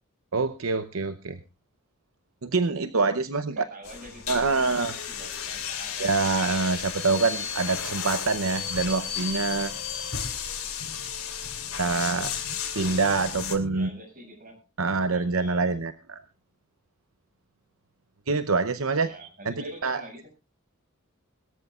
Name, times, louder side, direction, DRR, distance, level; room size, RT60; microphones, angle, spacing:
voice 1, 0.3-1.4 2.4-3.7 4.3-4.9 6.0-9.7 11.8-12.3 12.7-13.9 14.8-16.2 18.3-19.5 19.8-20.0, right 4 dB, 75° right, 12 dB, 0.8 m, -25 dB
voice 2, 3.5-6.3 13.7-14.6 15.1-15.7 19.0-20.3, right 1 dB, 40° right, 3 dB, 6.5 m, -46 dB
sound 1, 3.8-13.6, left 7 dB, 90° left, 2.9 m, -33 dB
22.0 x 13.5 x 2.4 m, 0.28 s
head